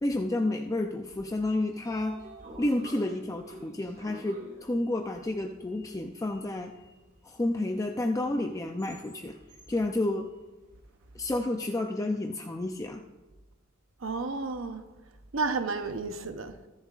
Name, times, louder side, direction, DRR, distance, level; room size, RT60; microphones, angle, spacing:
voice 1, 0.0-2.2 2.6-6.7 7.2-9.4 9.7-10.3 11.1-13.0, left 2 dB, 15° left, 0.4 m, -30 dB
Sliding door, 1.6-11.4, right 2 dB, 45° right, 3.4 m, -52 dB
voice 2, 14.0-14.8 15.3-16.5, right 4 dB, 70° right, 0.8 m, -31 dB
22.0 x 7.4 x 2.5 m
head